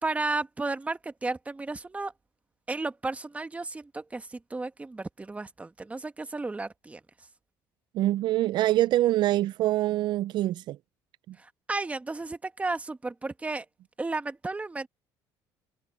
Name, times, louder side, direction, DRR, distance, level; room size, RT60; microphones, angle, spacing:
voice 1, 0.0-2.1 2.7-7.3 11.4-13.7 14.0-14.9, right 3 dB, 15° right, 1.5 m, -33 dB
voice 2, 7.9-10.8 11.3-11.4, right 15 dB, 60° right, 0.4 m, -25 dB
cardioid pair, 105°, 9 cm